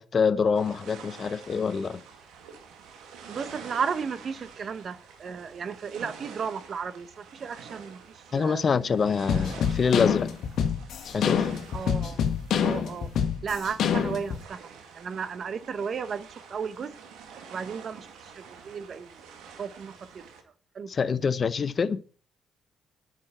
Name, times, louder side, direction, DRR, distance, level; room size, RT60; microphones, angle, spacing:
voice 1, 0.0-2.0 8.3-10.3 11.0-11.5 20.9-22.0, left 5 dB, 45° left, 0.7 m, -25 dB
sound 1, 0.5-20.4, right 6 dB, 90° right, 2.1 m, -48 dB
voice 2, 3.3-8.0 8.3-8.6 11.7-12.2 12.6-13.1 13.4-14.6 14.9-16.9 17.5-19.2 19.6-20.2 20.7-20.9, right 6 dB, 50° right, 1.0 m, -34 dB
sound 2, 9.3-14.4, left 7 dB, 70° left, 1.5 m, -26 dB
9.5 x 6.6 x 7.8 m
cardioid pair, 90°, 0 cm